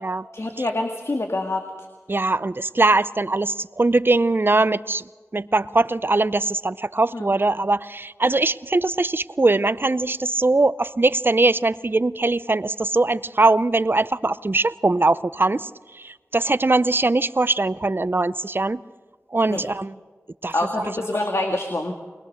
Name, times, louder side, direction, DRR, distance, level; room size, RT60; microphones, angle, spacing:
voice 1, 0.3-1.6 7.1-7.3 19.5-19.6 20.5-21.9, left 2 dB, 60° left, 3 dB, 1.9 m, -26 dB
voice 2, 2.1-5.0 5.3-18.8 19.3-20.0 20.4-20.5, right 2 dB, 40° right, 16 dB, 0.6 m, -21 dB
22.0 x 20.5 x 6.6 m, 1.4 s
wide cardioid pair, 50°, 5 cm